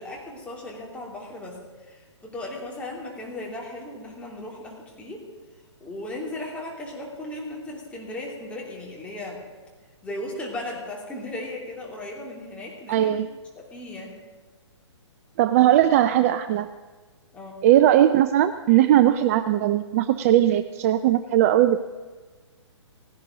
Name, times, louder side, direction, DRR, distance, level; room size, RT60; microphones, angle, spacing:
voice 1, 0.0-5.2 5.8-9.4 10.0-13.1 13.6-14.2 17.3-17.6, left 1 dB, 10° left, -2 dB, 3.0 m, -36 dB
voice 2, 12.9-13.3 15.4-16.7 17.6-21.8, right 12 dB, 30° right, 11 dB, 0.4 m, -19 dB
17.5 x 16.0 x 3.9 m, 1.4 s
figure-of-eight pair, 130°, 16 cm